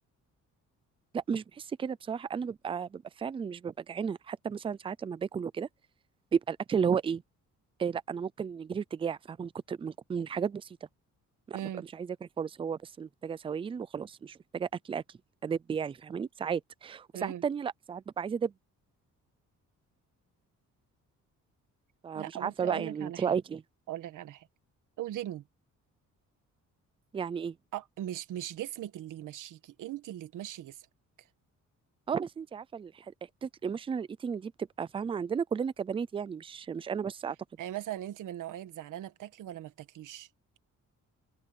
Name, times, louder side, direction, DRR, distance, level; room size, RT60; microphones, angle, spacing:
voice 1, 1.1-5.7 6.3-7.2 7.8-10.7 11.5-11.6 11.9-15.0 15.4-18.5 22.0-23.6 27.1-27.6 32.1-33.1 33.4-34.5 34.8-37.4, right 7 dB, 20° right, 0.4 m, -33 dB
voice 2, 11.5-11.9 17.1-17.4 22.1-23.4 23.9-24.5 25.0-25.4 27.7-30.8 37.6-40.3, right 12 dB, 80° right, 1.4 m, -39 dB
open air
cardioid pair, 170°, 31 cm